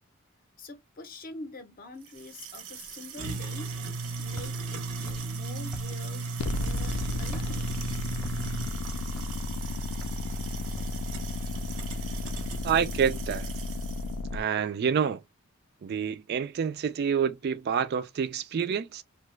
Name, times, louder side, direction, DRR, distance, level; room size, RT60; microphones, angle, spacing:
voice 1, 0.6-3.7 4.2-7.8, left 2 dB, 40° left, 0.7 m, -45 dB
sound 1, 2.1-14.1, right 4 dB, 80° right, 0.7 m, -37 dB
Walk footsteps, 3.9-13.0, equal, ahead, 0.6 m, -48 dB
sound 2, 6.4-14.4, left 3 dB, 80° left, 0.5 m, -33 dB
voice 2, 12.6-13.5 14.3-15.2 15.8-19.0, right 7 dB, 45° right, 0.3 m, -28 dB
2.8 x 2.2 x 3.1 m
head